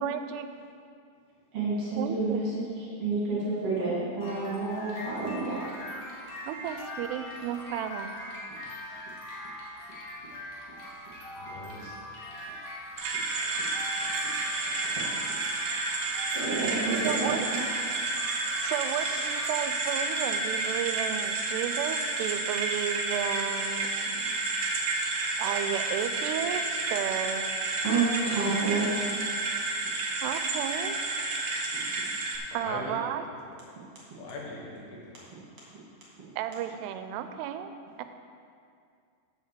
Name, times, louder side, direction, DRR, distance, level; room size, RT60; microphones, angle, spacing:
voice 1, 0.0-0.5 2.0-2.4 6.5-8.2 17.0-17.5 18.6-24.4 25.4-27.5 30.2-31.0 32.5-33.2 36.4-37.7 38.0-38.1, right 10 dB, 90° right, 9 dB, 2.6 m, -33 dB
voice 2, 1.5-2.7 3.0-5.6 14.9-15.0 16.3-17.3 17.9-18.1 19.0-19.2 27.8-29.0, right 3 dB, 45° right, -7 dB, 2.6 m, -29 dB
sound 1, 4.2-19.5, left 1 dB, 50° left, 2.3 m, -42 dB
voice 3, 11.4-12.0 32.6-33.0 34.1-35.2, left 2 dB, 75° left, -3 dB, 3.4 m, -41 dB
sound 2, 13.0-32.4, right 3 dB, 70° right, 1.9 m, -30 dB
8.4 x 6.4 x 6.8 m, 2.3 s
omnidirectional pair, 4.7 m